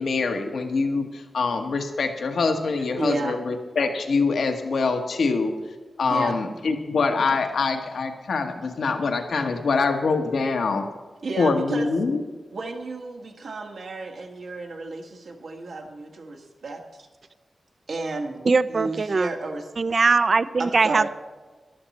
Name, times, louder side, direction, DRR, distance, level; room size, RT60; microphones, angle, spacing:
voice 1, 0.0-5.5 6.0-10.8 11.4-12.2, left 4 dB, 85° left, 5 dB, 1.3 m, -24 dB
voice 2, 3.0-3.4 6.1-6.4 11.2-11.9 12.5-17.1 17.9-18.4 18.7-19.6 20.6-21.1, right 3 dB, 80° right, 1 dB, 1.8 m, -32 dB
voice 3, 18.4-19.3 19.8-21.1, right 4 dB, 55° right, 15 dB, 0.5 m, -21 dB
13.5 x 11.5 x 4.3 m, 1.4 s
cardioid pair, 70°, 0 cm